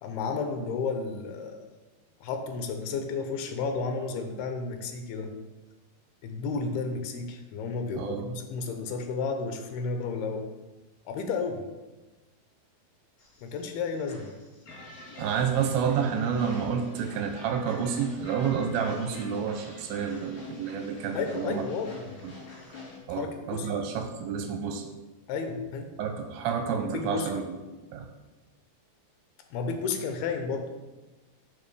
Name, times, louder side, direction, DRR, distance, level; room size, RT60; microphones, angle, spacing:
voice 1, 0.0-1.6 2.2-5.3 6.2-10.5 11.1-11.6 13.4-14.3 21.1-22.2 23.1-23.7 25.3-25.9 26.9-27.3 29.5-30.7, left 4 dB, 80° left, 6 dB, 2.7 m, -32 dB
sound 1, 13.2-23.0, left 2 dB, 65° left, 4.8 m, -46 dB
voice 2, 15.2-21.6 22.2-22.3 23.1-24.8 26.0-27.6 27.9-28.1, right 7 dB, 80° right, 6 dB, 2.3 m, -29 dB
8.7 x 4.5 x 6.8 m, 1.2 s
omnidirectional pair, 4.8 m